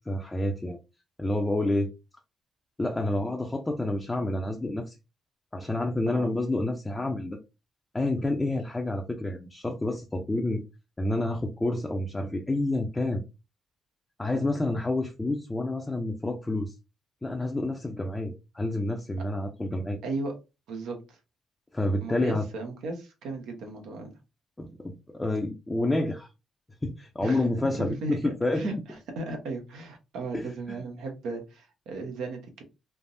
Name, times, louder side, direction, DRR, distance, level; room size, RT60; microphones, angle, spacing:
voice 1, 0.1-0.8 1.2-1.9 2.8-4.9 5.5-7.4 7.9-10.6 11.0-13.2 14.2-16.7 17.2-20.0 21.7-22.5 24.6-26.3 26.8-28.7 30.3-30.8, left 2 dB, 15° left, 0.5 m, -29 dB
voice 2, 20.0-20.3 20.7-21.2 22.0-24.1 27.2-27.4 28.0-28.7 29.2-32.6, right 3 dB, 85° right, 0.9 m, -36 dB
3.3 x 2.0 x 2.6 m
cardioid pair, 90°, 0 cm